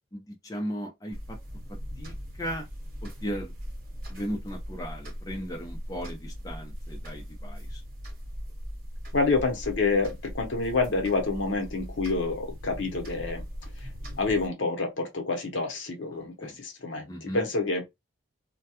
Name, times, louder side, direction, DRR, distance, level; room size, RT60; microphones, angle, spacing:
voice 1, 0.1-1.4 2.0-2.7 3.0-3.5 4.1-7.8 16.1-16.6 17.1-17.4, equal, 15° left, 0.6 m, -36 dB
sound 1, 1.1-14.5, equal, 45° right, 1.1 m, -39 dB
voice 2, 9.1-13.4 14.2-17.8, left 3 dB, 60° left, 0.8 m, -28 dB
2.3 x 2.2 x 2.8 m
head